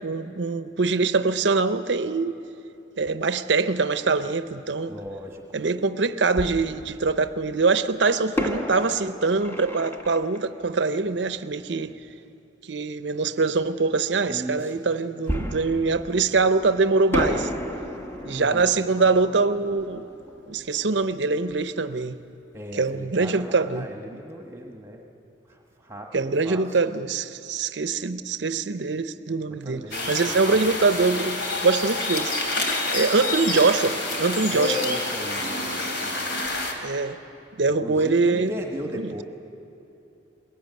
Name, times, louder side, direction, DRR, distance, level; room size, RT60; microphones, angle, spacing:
voice 1, 0.0-2.4 3.0-4.9 5.5-12.0 12.7-17.5 18.2-20.0 20.5-22.2 22.8-23.9 26.1-29.8 30.1-32.3 32.9-34.8 36.8-37.2 37.6-38.5, right 4 dB, 65° right, 0.7 m, -23 dB
voice 2, 4.9-5.4 14.3-14.7 18.3-18.8 22.5-25.0 25.5-26.8 29.5-30.7 34.5-36.5 37.8-39.2, equal, 15° right, 1.3 m, -36 dB
Fireworks, 5.1-5.2 6.3-7.5 8.3-11.8 15.3-16.7 17.1-21.7 21.9-22.0 22.5-22.8, left 1 dB, 15° left, 1.2 m, -33 dB
sound 1, 29.9-36.7, left 2 dB, 65° left, 2.9 m, -28 dB
22.0 x 16.5 x 9.3 m
head